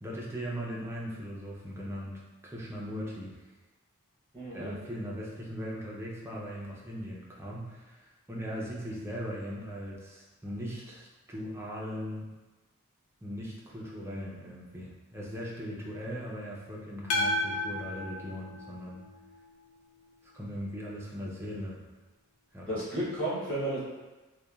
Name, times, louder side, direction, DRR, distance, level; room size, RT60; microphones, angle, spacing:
voice 1, 0.0-3.4 4.5-12.3 13.2-19.0 20.3-21.8 22.5-22.9, equal, 10° right, -4 dB, 0.4 m, -39 dB
voice 2, 4.3-4.7 22.7-23.8, right 1 dB, 5° left, -11 dB, 0.8 m, -32 dB
sound 1, 17.1-19.4, left 1 dB, 70° left, 0.4 m, -32 dB
2.9 x 2.1 x 2.3 m, 1.2 s
head